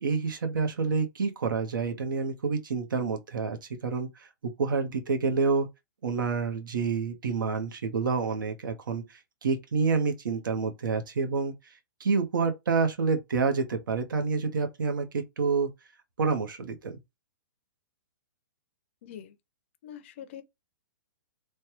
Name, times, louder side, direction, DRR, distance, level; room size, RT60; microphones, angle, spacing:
voice 1, 0.0-5.7 6.0-11.5 12.0-15.7 16.2-17.0, right 5 dB, 85° right, 0.9 m, -28 dB
voice 2, 19.0-19.4 19.8-20.4, left 9 dB, 35° left, 0.5 m, -44 dB
3.2 x 2.2 x 2.9 m
hypercardioid pair, 165°, 11 cm